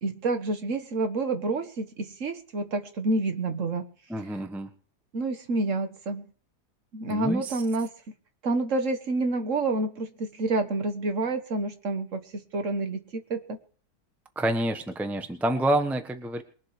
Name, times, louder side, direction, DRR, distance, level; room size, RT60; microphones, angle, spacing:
voice 1, 0.0-3.8 5.1-6.2 6.9-7.9 8.4-13.0 13.3-13.4, right 2 dB, 50° right, 8 dB, 1.8 m, -28 dB
voice 2, 4.1-4.7 7.1-7.6 14.3-16.4, right 1 dB, ahead, 7 dB, 1.1 m, -28 dB
22.5 x 7.6 x 5.0 m, 0.41 s
omnidirectional pair, 1.7 m